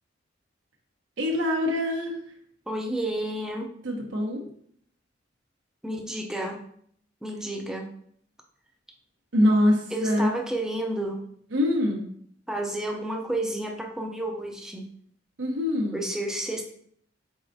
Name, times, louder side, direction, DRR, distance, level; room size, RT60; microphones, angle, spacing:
voice 1, 1.2-2.2 3.8-4.4 9.3-10.3 11.5-12.1 15.4-16.0, left 1 dB, 80° right, -1 dB, 0.9 m, -24 dB
voice 2, 2.7-3.7 5.8-6.6 7.2-7.9 9.9-11.2 12.5-14.9 15.9-16.6, right 1 dB, 5° right, 1 dB, 0.5 m, -31 dB
4.7 x 4.2 x 2.6 m, 0.63 s
head